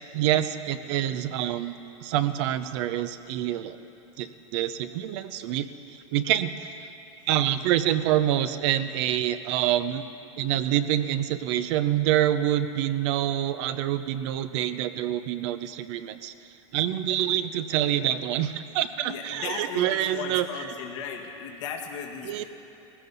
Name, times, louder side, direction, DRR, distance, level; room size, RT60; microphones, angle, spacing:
voice 1, 0.1-1.7 2.0-3.8 4.2-6.8 7.3-10.0 10.4-16.3 16.7-20.5 22.2-22.4, right 12 dB, 60° right, 11 dB, 0.7 m, -26 dB
voice 2, 19.0-22.4, left 6 dB, 65° left, 1 dB, 1.8 m, -36 dB
19.0 x 15.5 x 4.1 m, 2.8 s
hypercardioid pair, 105°, 16 cm